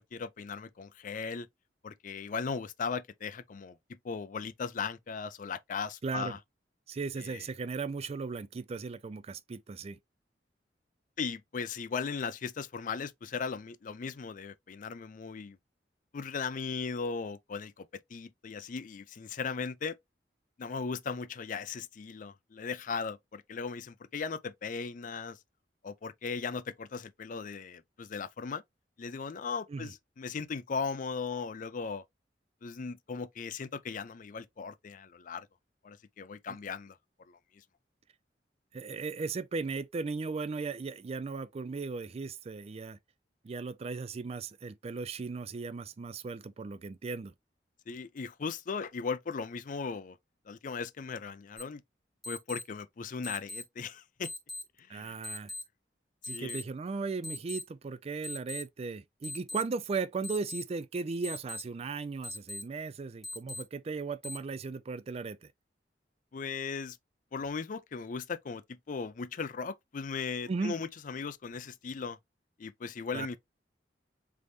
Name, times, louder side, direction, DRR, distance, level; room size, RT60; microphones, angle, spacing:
voice 1, 0.0-1.5 1.8-6.4 7.2-7.4 11.2-15.6 16.1-17.9 18.1-20.0 20.6-25.4 25.8-28.6 29.0-32.0 32.6-35.5 35.8-37.0 37.3-37.4 47.9-50.2 50.5-51.8 52.3-54.3 54.8-55.2 56.2-56.6 66.3-67.0 67.3-72.2 72.6-73.4, left 5 dB, 50° left, 0.4 m, -37 dB
voice 2, 6.0-6.4 6.9-10.0 29.7-29.9 36.5-36.6 38.7-43.0 43.4-47.3 54.9-55.5 56.3-65.5 70.5-70.8 73.1-73.3, right 4 dB, 35° right, 0.3 m, -37 dB
sound 1, 51.6-51.7 52.2-52.6 53.2-53.6 54.2-54.6 55.2-55.6 56.2-56.6 57.2-57.6 58.2-58.6 59.2-59.6 60.2-60.6 61.2-61.6 62.2-62.6 63.2-63.6 64.2-64.4, left 2 dB, ahead, 2.0 m, -39 dB
3.9 x 3.5 x 3.1 m
head